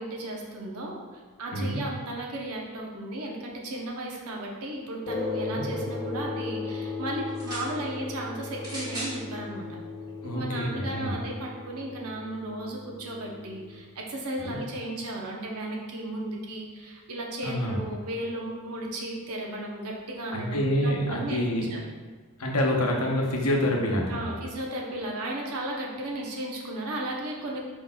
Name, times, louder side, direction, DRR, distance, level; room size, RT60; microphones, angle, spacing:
voice 1, 0.0-9.8 10.2-21.8 24.1-27.6, right 1 dB, 85° right, -1 dB, 0.8 m, -35 dB
sound 1, 5.1-13.8, left 3 dB, 40° left, 1.0 m, -36 dB
sound 2, 7.3-7.7 8.6-9.2 10.1-10.2, right 1 dB, 20° right, 1.4 m, -36 dB
voice 2, 10.2-11.2 14.4-14.6 17.4-17.8 20.3-21.6 22.4-24.5, left 1 dB, 80° left, 0 dB, 0.8 m, -27 dB
4.6 x 4.2 x 2.2 m, 1.5 s
head